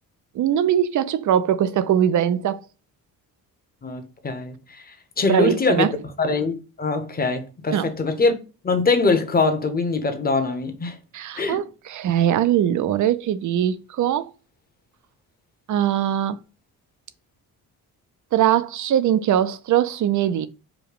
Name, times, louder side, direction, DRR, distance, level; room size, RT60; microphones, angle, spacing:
voice 1, 0.3-2.6 5.3-5.9 7.7-7.9 11.1-14.3 15.7-16.4 18.3-20.5, right 10 dB, 55° right, 0.5 m, -21 dB
voice 2, 3.8-5.9 6.2-8.3 8.6-11.0 11.3-11.6, left 3 dB, 25° left, 1.0 m, -23 dB
5.0 x 2.2 x 4.7 m
cardioid pair, 130°, 36 cm